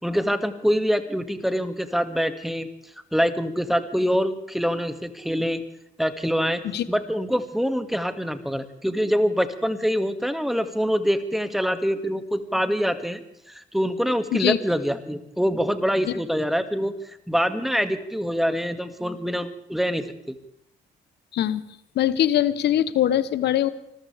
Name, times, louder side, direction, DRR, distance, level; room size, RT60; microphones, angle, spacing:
voice 1, 0.0-2.7 3.1-5.6 6.0-6.6 6.9-13.2 13.5-20.3, equal, ahead, 8 dB, 2.1 m, -25 dB
voice 2, 21.9-23.7, left 11 dB, 70° left, 15 dB, 1.0 m, -22 dB
26.0 x 14.5 x 3.5 m, 0.80 s
supercardioid pair, 60°, 18 cm